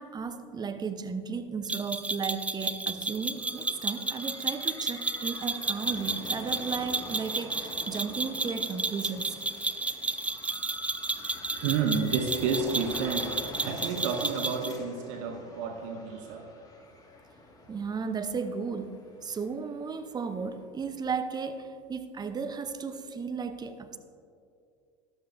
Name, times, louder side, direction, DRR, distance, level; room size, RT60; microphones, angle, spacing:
voice 1, 0.0-9.4 17.7-24.0, right 5 dB, 25° right, 9 dB, 0.8 m, -35 dB
sound 1, 1.7-14.8, right 2 dB, 10° right, 0.4 m, -32 dB
sound 2, 3.0-20.6, left 2 dB, 20° left, 1.9 m, -47 dB
voice 2, 11.6-16.5, right 5 dB, 65° right, 5 dB, 0.9 m, -30 dB
13.0 x 12.0 x 2.6 m, 2.4 s
hypercardioid pair, 80°, 17 cm